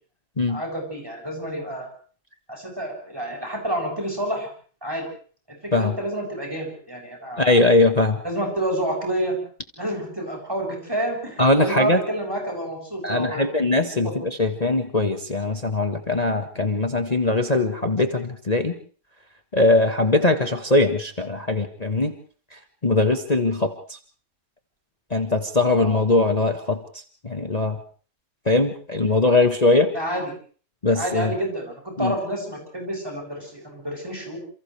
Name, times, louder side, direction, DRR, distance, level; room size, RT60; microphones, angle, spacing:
voice 1, 0.5-1.9 2.5-4.5 4.8-5.1 5.5-7.7 8.2-9.4 9.8-13.5 14.0-14.1 25.8-26.0 29.9-30.3 31.0-34.4, right 1 dB, 15° right, 1 dB, 7.7 m, -29 dB
voice 2, 7.4-8.2 11.4-12.0 13.0-18.8 19.5-22.1 22.5-23.7 25.1-27.8 28.4-29.9 30.8-31.3 32.0-32.1, left 2 dB, 25° left, 6 dB, 1.4 m, -21 dB
29.0 x 27.5 x 3.4 m, 0.43 s
omnidirectional pair, 1.9 m